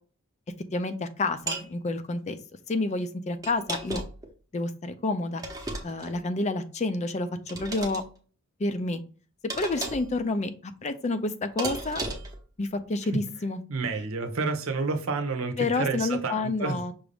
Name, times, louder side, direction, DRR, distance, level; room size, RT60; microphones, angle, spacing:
voice 1, 0.7-2.4 2.7-4.0 4.5-5.4 5.8-8.0 8.6-9.0 9.6-12.0 12.6-13.6 15.6-16.9, left 2 dB, 30° left, 0.4 m, -29 dB
sound 1, 1.5-1.7 3.4-4.3 5.4-6.2 7.5-8.0 9.5-10.1 11.6-12.4, right 2 dB, 15° right, 0.8 m, -34 dB
voice 2, 13.7-16.8, right 3 dB, 70° right, 0.8 m, -29 dB
6.0 x 2.6 x 3.3 m
head